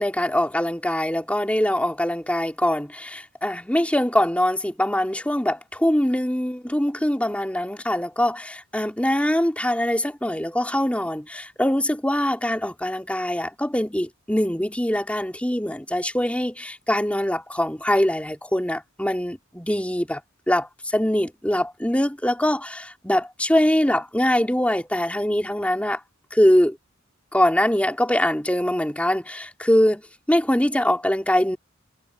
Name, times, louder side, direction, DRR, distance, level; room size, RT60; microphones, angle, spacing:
voice 1, 0.0-20.2 20.5-26.0 26.3-26.7 27.3-30.0 30.3-31.6, left 1 dB, 5° left, 3.2 m, -23 dB
head